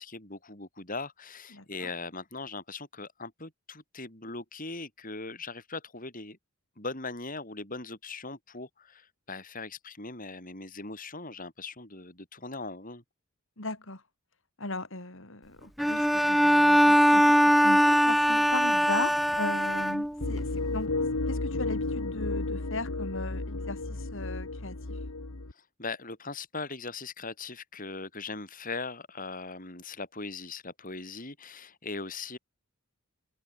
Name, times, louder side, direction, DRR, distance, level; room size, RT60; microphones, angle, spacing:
voice 1, 0.0-6.4 6.8-13.0 25.5-32.4, left 3 dB, 40° left, 7.3 m, -40 dB
voice 2, 1.5-1.9 13.6-14.0 14.6-21.0 21.3-25.0, left 2 dB, 60° left, 4.1 m, -38 dB
Bowed string instrument, 15.8-20.4, equal, ahead, 1.3 m, -22 dB
sound 1, 20.2-25.5, left 2 dB, 85° left, 1.6 m, -32 dB
head